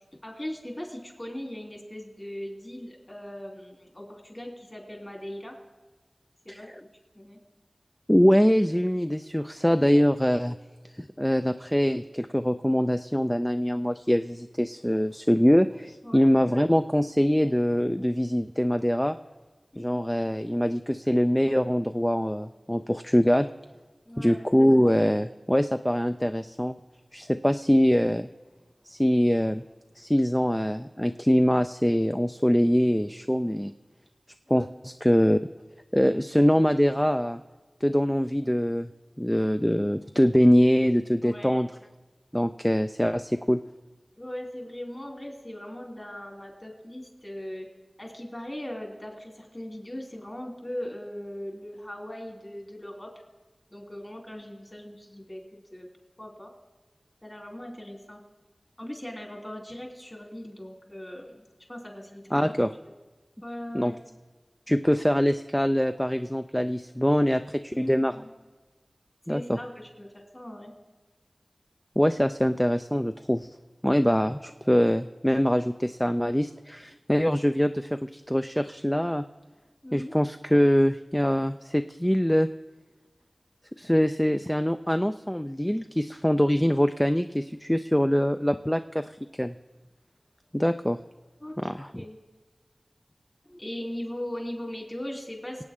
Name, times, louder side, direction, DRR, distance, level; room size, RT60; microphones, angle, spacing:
voice 1, 0.2-5.6 6.4-6.9 7.1-7.4 16.0-16.3 19.7-20.0 24.1-24.4 34.4-34.7 41.2-41.6 44.1-47.7 48.0-53.1 53.7-55.4 55.7-55.9 56.2-56.5 57.2-58.2 58.8-62.5 62.9-63.0 63.4-64.0 67.7-68.3 69.3-70.7 79.8-80.1 91.4-92.2 93.6-95.6, left 1 dB, 25° left, 0 dB, 3.2 m, -39 dB
voice 2, 8.1-10.6 11.0-19.2 19.8-23.5 24.2-26.8 27.1-28.3 28.9-29.6 30.0-33.7 34.5-35.4 35.9-37.4 37.8-38.9 39.2-41.7 42.3-43.6 62.3-62.7 63.7-63.9 64.7-68.1 69.3-69.6 72.0-73.5 73.8-79.2 79.9-82.5 83.8-89.1 89.4-89.6 90.5-91.0 91.6-91.9, equal, 10° left, 9 dB, 0.4 m, -23 dB
24.5 x 8.7 x 3.7 m, 1.3 s
wide cardioid pair, 60°, 0 cm